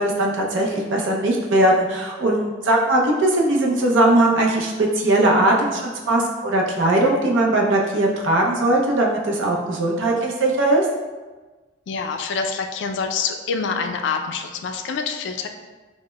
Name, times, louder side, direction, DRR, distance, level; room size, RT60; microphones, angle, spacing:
voice 1, 0.0-10.9, right 1 dB, 80° right, -1 dB, 0.6 m, -19 dB
voice 2, 11.9-15.5, left 5 dB, 65° left, 5 dB, 0.3 m, -26 dB
5.0 x 2.1 x 2.2 m, 1.3 s
head